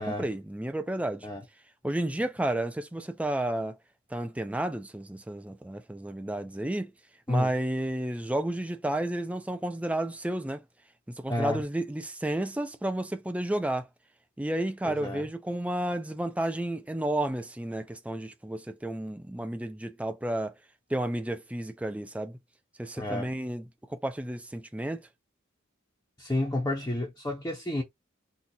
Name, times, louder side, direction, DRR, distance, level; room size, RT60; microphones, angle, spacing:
voice 1, 0.0-1.3 1.8-3.8 4.1-6.9 7.3-10.6 11.1-13.9 14.4-20.5 20.9-22.4 22.8-25.1, right 1 dB, 5° right, 0.5 m, -32 dB
voice 2, 11.3-11.6 14.8-15.2 23.0-23.3 26.2-27.8, left 1 dB, 15° left, 0.8 m, -31 dB
2.9 x 2.5 x 3.8 m
head